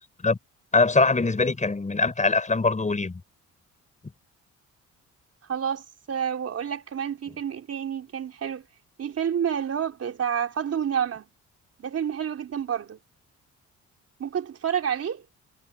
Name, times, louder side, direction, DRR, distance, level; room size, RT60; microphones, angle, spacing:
voice 1, 0.7-3.2, left 3 dB, 25° left, 5.8 m, -22 dB
voice 2, 5.5-8.6 9.0-11.3 11.8-13.0 14.2-15.2, right 8 dB, 55° right, 4.0 m, -29 dB
cardioid pair, 90°, 30 cm